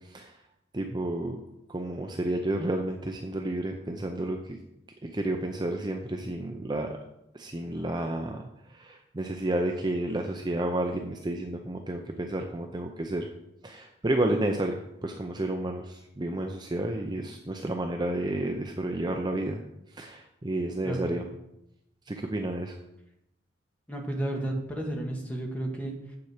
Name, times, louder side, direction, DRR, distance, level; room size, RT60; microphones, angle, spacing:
voice 1, 0.7-1.4 1.7-4.6 5.1-6.9 7.3-8.4 8.8-13.3 13.6-19.6 20.0-21.3 22.1-22.8, right 1 dB, 25° right, 3 dB, 0.5 m, -31 dB
voice 2, 23.9-26.2, right 1 dB, 10° left, 0 dB, 1.5 m, -32 dB
7.8 x 7.0 x 4.9 m, 0.84 s
head